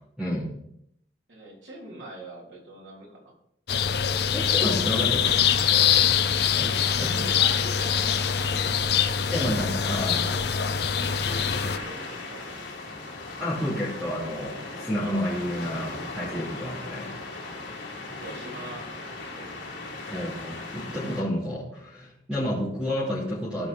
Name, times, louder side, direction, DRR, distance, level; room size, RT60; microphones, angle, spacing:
voice 1, 0.2-0.5 4.3-5.3 6.5-6.7 7.0-7.2 9.3-10.2 13.4-17.1 20.1-23.7, equal, 5° right, -10 dB, 3.0 m, -30 dB
voice 2, 1.3-3.4 6.9-9.1 9.8-12.6 18.0-19.6, right 1 dB, 80° right, -3 dB, 3.5 m, -44 dB
sound 1, 3.7-11.8, left 8 dB, 55° left, 0.6 m, -24 dB
sound 2, 5.2-21.2, left 3 dB, 80° left, 3.0 m, -38 dB
15.5 x 5.3 x 4.3 m, 0.73 s
head